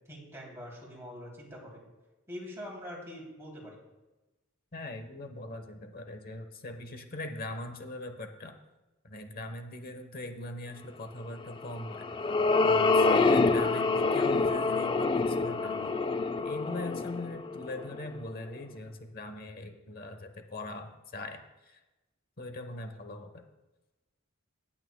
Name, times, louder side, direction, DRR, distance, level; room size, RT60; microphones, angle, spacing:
voice 1, 0.1-1.8 2.3-3.8, equal, 15° right, -3 dB, 3.0 m, -44 dB
voice 2, 4.7-8.6 9.0-12.0 12.6-15.9 16.4-21.8 22.4-23.4, left 2 dB, 45° left, 6 dB, 1.0 m, -41 dB
sound 1, 11.6-18.2, left 3 dB, 25° left, 0.4 m, -26 dB
17.5 x 8.7 x 2.2 m, 1.1 s
head